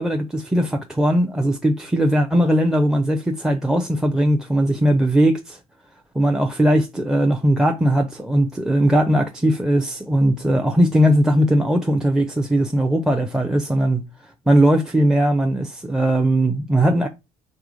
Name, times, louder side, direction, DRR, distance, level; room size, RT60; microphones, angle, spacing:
voice 1, 0.0-5.6 6.1-14.0 14.5-17.1, right 1 dB, 5° right, 0.5 m, -19 dB
3.7 x 3.0 x 4.8 m
figure-of-eight pair, 55°, 17 cm